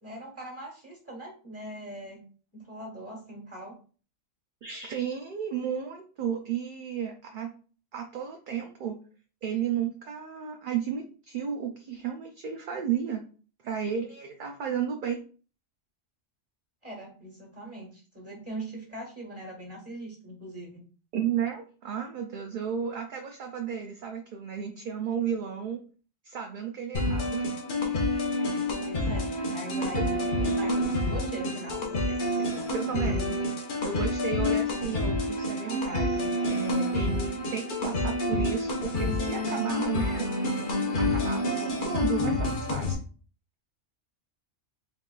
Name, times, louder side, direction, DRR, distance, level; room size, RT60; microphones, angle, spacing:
voice 1, 0.0-2.2 2.5-3.8 16.8-20.8 28.8-33.3 41.5-41.7, right 1 dB, 10° right, -1 dB, 1.4 m, -41 dB
voice 2, 4.6-7.5 7.9-9.0 9.4-13.2 13.6-15.2 21.1-25.8 26.2-27.5 32.7-33.4 33.8-40.4 41.0-43.0, right 7 dB, 60° right, 3 dB, 0.5 m, -33 dB
sound 1, 26.9-42.9, left 1 dB, 50° left, 0.8 m, -28 dB
3.8 x 3.7 x 2.3 m, 0.39 s
omnidirectional pair, 1.2 m